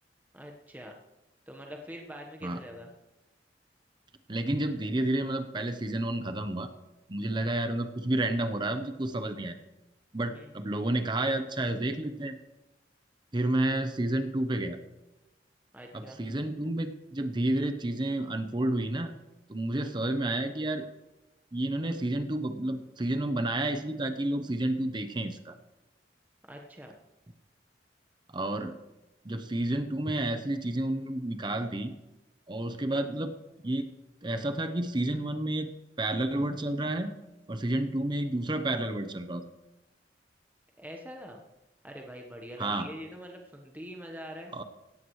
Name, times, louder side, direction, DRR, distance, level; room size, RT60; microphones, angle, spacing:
voice 1, 0.3-0.9 1.5-2.9 10.3-10.5 15.7-16.2 26.5-27.0 40.8-41.4 41.8-44.5, equal, 10° right, 1 dB, 1.1 m, -44 dB
voice 2, 4.3-6.7 7.1-9.6 10.1-12.4 13.3-14.8 15.9-19.1 19.5-20.9 21.5-25.5 28.3-28.7 29.2-31.9 32.5-33.3 33.6-33.9 34.2-35.7 36.0-37.1 37.5-39.4 42.6-42.9 44.5-44.6, right 1 dB, 25° right, 8 dB, 0.8 m, -30 dB
17.0 x 14.5 x 3.2 m, 1.0 s
head